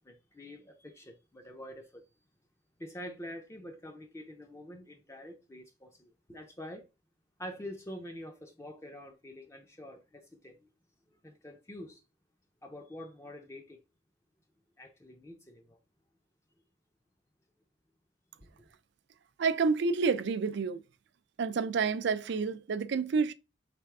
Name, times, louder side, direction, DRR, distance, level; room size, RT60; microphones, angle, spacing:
voice 1, 0.0-2.0 2.8-6.9 7.4-10.6 11.1-12.0 12.6-13.8 14.8-15.8 18.4-18.7, equal, 15° left, 0.6 m, -46 dB
voice 2, 19.4-20.8 21.4-23.3, right 5 dB, 65° right, 0.4 m, -29 dB
3.4 x 3.3 x 4.7 m
head